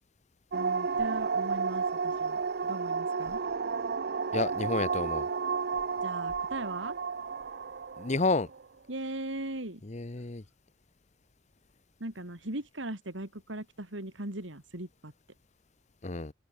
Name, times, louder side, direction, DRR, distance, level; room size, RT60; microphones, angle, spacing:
sound 1, 0.5-8.6, right 5 dB, 55° right, 0.6 m, -32 dB
voice 1, 0.5-3.4 6.0-7.0 8.9-9.8 12.0-15.1, right 1 dB, 75° right, 3.4 m, -39 dB
voice 2, 4.3-5.3 8.0-8.5 9.8-10.4 16.0-16.3, left 3 dB, 35° left, 0.9 m, -30 dB
open air
head